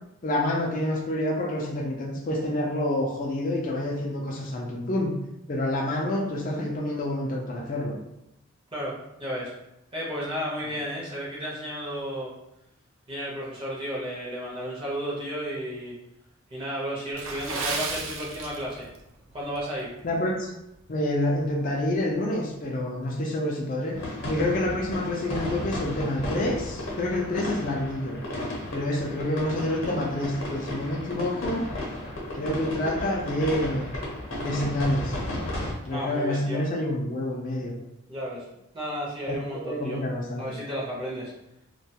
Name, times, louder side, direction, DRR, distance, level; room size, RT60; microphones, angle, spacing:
voice 1, 0.2-5.1 5.5-7.9 20.0-20.5 20.9-24.0 24.3-28.2 28.7-31.6 32.3-34.0 34.4-35.2 35.8-37.7 39.3-39.4 39.6-40.4, left 1 dB, 40° left, -2 dB, 0.3 m, -28 dB
voice 2, 8.7-9.5 9.9-12.3 13.1-16.0 16.5-18.9 19.3-19.9 35.9-36.6 38.1-38.4 38.7-40.0 40.4-41.3, equal, 25° right, -6 dB, 0.6 m, -33 dB
Water / Splash splatter, 17.1-19.0 19.3-19.6 20.1-20.3 20.8-20.9, right 4 dB, 75° right, 0.4 m, -33 dB
sound 1, 23.9-35.7, left 1 dB, 65° left, 0.7 m, -34 dB
2.3 x 2.2 x 2.7 m, 0.86 s
head